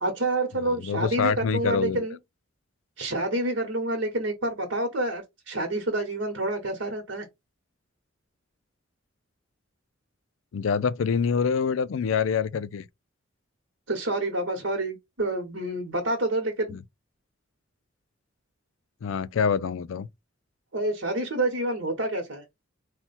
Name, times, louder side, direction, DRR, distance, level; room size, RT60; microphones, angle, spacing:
voice 1, 0.0-2.2 3.0-7.3 13.9-16.8 20.7-22.4, right 1 dB, 70° right, 1.1 m, -28 dB
voice 2, 0.7-2.0 10.5-12.8 16.7-16.8 19.0-20.1, left 6 dB, 80° left, 0.4 m, -26 dB
4.2 x 2.2 x 4.1 m
head